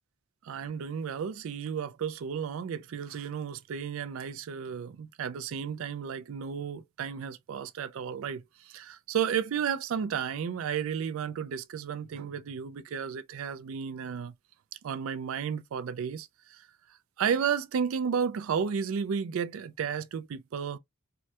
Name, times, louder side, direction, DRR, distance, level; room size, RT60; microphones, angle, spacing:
voice 1, 0.4-14.3 14.8-16.3 17.2-20.8, right 7 dB, 65° right, 0.3 m, -33 dB
3.2 x 2.2 x 2.8 m
head